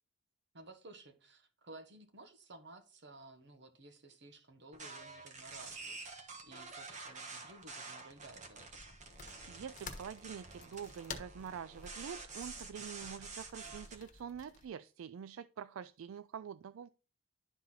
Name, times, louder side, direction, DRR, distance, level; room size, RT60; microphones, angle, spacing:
voice 1, 0.5-9.0, right 2 dB, 60° right, 1.3 m, -55 dB
sound 1, 4.7-14.0, right 4 dB, 40° right, 1.3 m, -49 dB
sound 2, 8.7-14.7, left 4 dB, 40° left, 1.2 m, -52 dB
voice 2, 9.5-16.9, right 7 dB, 85° right, 0.3 m, -46 dB
11.5 x 4.0 x 3.9 m
head